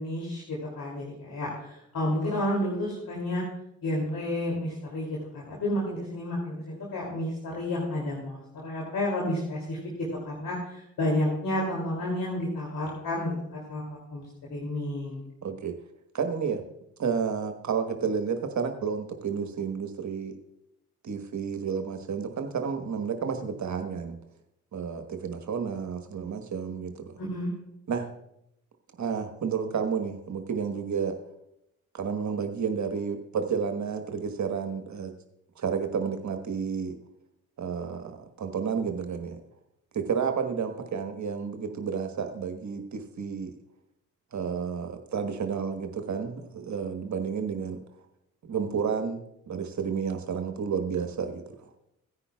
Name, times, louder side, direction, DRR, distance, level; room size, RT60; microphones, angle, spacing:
voice 1, 0.0-3.4 3.8-14.2 14.5-15.2 27.2-27.5, left 1 dB, 55° left, -3 dB, 2.9 m, -31 dB
voice 2, 15.4-15.7 16.1-16.6 17.0-20.3 21.0-24.2 24.7-27.1 27.9-28.1 29.0-31.2 31.9-35.1 35.6-36.9 37.6-39.4 39.9-43.5 44.3-47.8 48.5-49.2 49.5-51.4, right 6 dB, 45° right, 6 dB, 1.4 m, -31 dB
17.0 x 9.8 x 2.3 m, 0.83 s
hypercardioid pair, 45°, 39 cm